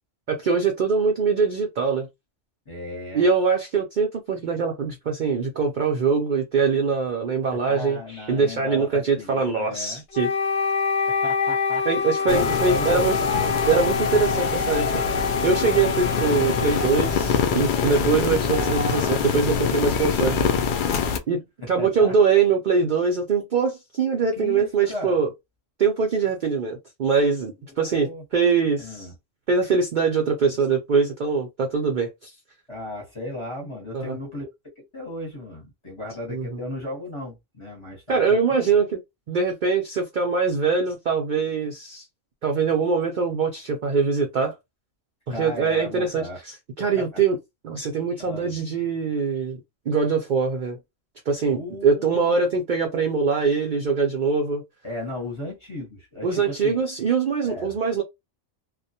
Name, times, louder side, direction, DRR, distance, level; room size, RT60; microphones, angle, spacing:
voice 1, 0.3-2.1 3.1-10.3 11.9-13.1 13.7-14.9 15.4-20.4 20.9-21.0 21.3-25.3 25.8-29.1 29.5-32.3 33.9-34.2 36.3-36.6 38.1-39.0 39.3-42.0 42.4-44.5 45.3-46.3 46.8-47.4 47.6-49.6 49.9-50.8 51.3-54.6 56.2-58.0, right 5 dB, 70° right, 0.4 m, -23 dB
voice 2, 2.7-3.3 4.8-4.9 7.5-10.0 11.1-13.5 21.6-22.1 24.3-25.2 27.8-28.2 28.8-29.1 32.7-34.5 34.8-38.6 45.3-46.4 47.0-47.2 48.2-48.5 51.5-52.4 54.8-56.8 57.4-57.7, left 2 dB, 25° left, 0.8 m, -35 dB
Wind instrument woodwind instrument, 10.1-18.2, left 5 dB, 60° left, 0.8 m, -26 dB
sound 1, 12.3-21.2, left 6 dB, 90° left, 0.4 m, -24 dB
2.3 x 2.1 x 2.7 m
omnidirectional pair, 1.4 m